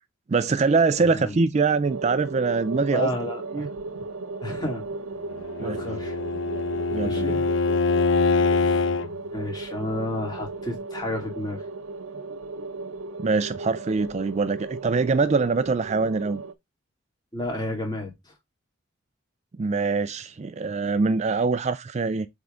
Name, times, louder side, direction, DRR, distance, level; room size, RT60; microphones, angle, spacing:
voice 1, 0.3-3.1 3.5-3.7 5.6-5.8 6.9-7.4 13.2-16.4 19.6-22.3, right 4 dB, 35° right, 0.3 m, -23 dB
voice 2, 1.0-1.5 2.9-3.7 4.0-4.1 4.4-4.8 5.6-6.2 7.0-7.5 8.2-8.8 9.3-11.6 17.3-18.3, left 1 dB, 20° left, 2.6 m, -32 dB
sound 1, 1.8-16.5, right 3 dB, 90° right, 0.7 m, -36 dB
Bowed string instrument, 5.4-9.1, left 3 dB, 65° left, 0.6 m, -24 dB
7.7 x 3.5 x 3.8 m
head